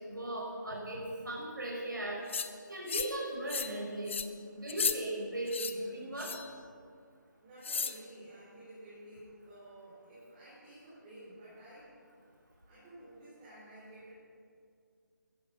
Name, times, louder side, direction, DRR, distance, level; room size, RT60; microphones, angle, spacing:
voice 1, 0.1-2.2 2.7-4.2 4.5-6.3, right 1 dB, 75° right, -3 dB, 5.2 m, -37 dB
sound 1, 2.3-2.5 2.9-3.2 3.5-3.8 4.1-4.3 4.7-5.0 5.5-5.7 6.2-6.5 7.6-8.0, left 5 dB, 40° left, 0.7 m, -34 dB
voice 2, 7.4-12.0 12.6-14.1, right 1 dB, 20° right, -10 dB, 4.7 m, -52 dB
15.5 x 14.5 x 5.5 m, 2.2 s
figure-of-eight pair, 155°, 11 cm